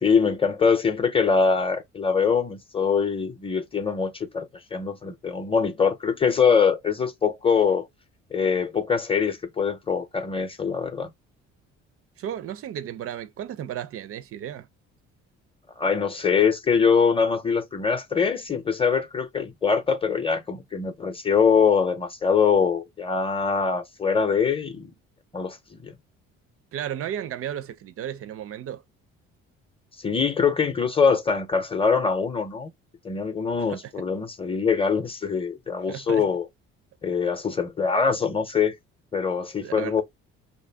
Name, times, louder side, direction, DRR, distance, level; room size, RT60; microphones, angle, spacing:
voice 1, 0.0-7.9 8.3-11.1 15.8-24.9 25.3-25.6 25.8-25.9 30.0-32.7 33.0-36.5 37.0-38.7 39.1-40.0, left 6 dB, 15° left, 0.7 m, -23 dB
voice 2, 12.2-14.7 26.7-28.8 33.6-33.8 35.9-36.3 39.6-40.0, right 10 dB, 40° right, 0.4 m, -34 dB
2.6 x 2.1 x 3.3 m
hypercardioid pair, 50°, 38 cm